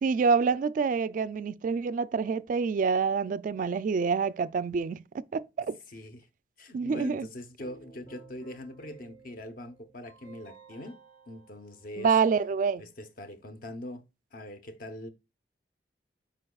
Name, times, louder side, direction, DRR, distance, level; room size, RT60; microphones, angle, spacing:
voice 1, 0.0-5.8 6.7-7.3 12.0-12.8, right 5 dB, 50° right, 0.3 m, -27 dB
voice 2, 5.9-6.3 6.6-11.0 11.3-12.1 12.8-14.0 14.3-15.1, left 1 dB, 55° left, 0.8 m, -42 dB
Keyboard (musical), 7.6-12.6, right 4 dB, 35° left, 3.3 m, -54 dB
8.6 x 5.2 x 2.3 m
head